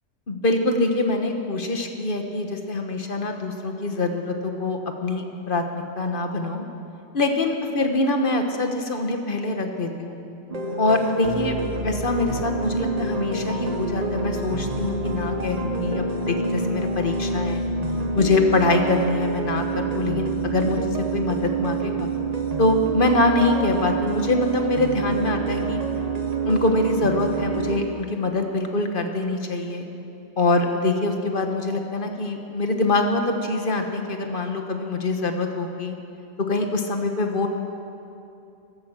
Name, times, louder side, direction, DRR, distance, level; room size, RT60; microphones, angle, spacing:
voice 1, 0.3-6.6 7.1-10.2 10.8-11.5 11.8-17.6 18.1-22.1 22.6-25.8 26.4-29.9 30.4-35.9 36.4-37.5, left 2 dB, 50° left, 5 dB, 1.4 m, -24 dB
sound 1, 10.5-27.8, right 4 dB, 35° right, 1.2 m, -27 dB
15.0 x 13.0 x 7.3 m, 2.7 s
omnidirectional pair, 1.2 m